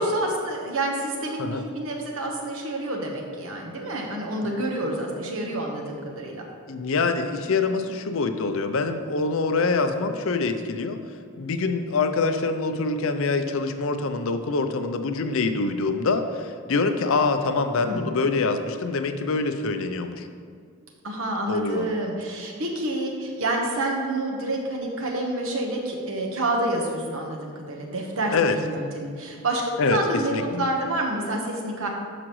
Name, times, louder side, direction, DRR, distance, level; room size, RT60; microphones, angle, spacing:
voice 1, 0.0-6.5 17.8-18.1 21.0-31.9, right 1 dB, 65° right, 0 dB, 1.2 m, -28 dB
voice 2, 6.7-11.0 11.4-20.3 21.5-21.9 28.3-28.6 29.8-30.0 30.3-30.7, left 4 dB, 65° left, 8 dB, 0.5 m, -25 dB
12.0 x 5.0 x 3.1 m, 2.2 s
head